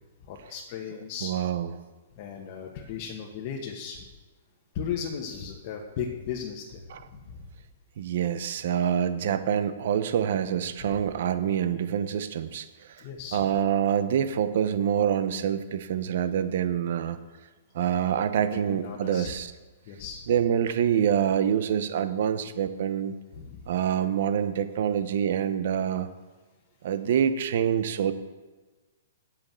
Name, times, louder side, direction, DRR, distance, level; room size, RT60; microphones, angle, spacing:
voice 1, 0.3-1.3 2.2-4.0 4.7-6.8 7.1-7.5 10.8-11.0 13.0-13.4 18.5-19.3 19.9-20.2 23.3-23.6, left 7 dB, 45° left, 0 dB, 1.4 m, -36 dB
voice 2, 1.2-1.7 6.9-7.0 8.0-13.0 13.3-17.2 17.7-19.5 20.3-23.1 23.7-26.1 26.8-28.1, right 9 dB, 60° right, 11 dB, 0.9 m, -26 dB
8.7 x 8.3 x 7.6 m, 1.2 s
hypercardioid pair, 150°, 0 cm